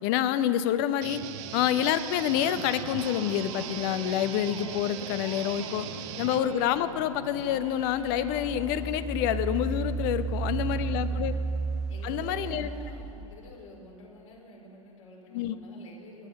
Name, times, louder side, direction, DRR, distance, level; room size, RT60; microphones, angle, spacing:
voice 1, 0.0-1.2 1.5-5.9 6.2-11.3 12.0-12.7 15.3-15.6, left 10 dB, 40° left, 13 dB, 0.8 m, -27 dB
sound 1, 1.0-6.4, right 11 dB, 35° right, 0.8 m, -39 dB
Electric guitar, 2.3-10.3, right 1 dB, 80° right, 3.0 m, -45 dB
voice 2, 6.1-6.5 10.3-11.4 11.9-16.3, left 1 dB, 65° left, -2 dB, 4.4 m, -48 dB
Engine, 6.8-6.9 7.5-13.4, right 4 dB, 5° right, 0.4 m, -33 dB
18.0 x 11.5 x 5.4 m, 2.8 s
figure-of-eight pair, 100°, 18 cm